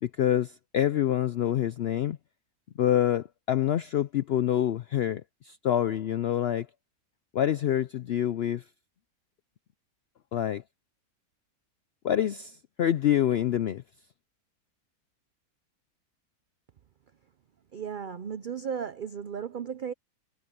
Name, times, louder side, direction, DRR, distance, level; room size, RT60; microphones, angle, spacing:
voice 1, 0.0-2.2 2.8-6.7 7.3-8.6 10.3-10.6 12.0-13.8, left 11 dB, 75° left, 0.5 m, -26 dB
voice 2, 17.7-19.9, right 7 dB, 75° right, 0.4 m, -35 dB
omnidirectional pair, 1.6 m